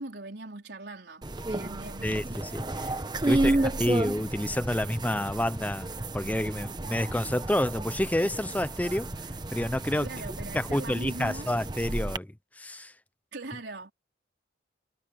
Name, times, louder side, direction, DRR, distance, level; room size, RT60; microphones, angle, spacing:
voice 1, 0.0-2.2 3.3-4.0 10.0-11.5 13.3-13.9, right 2 dB, 75° right, 4.4 m, -41 dB
sound 1, 1.2-12.2, right 2 dB, 25° right, 1.0 m, -32 dB
voice 2, 2.0-2.9 3.2-9.1 9.5-10.1 10.5-12.9, left 1 dB, 10° left, 0.7 m, -29 dB
head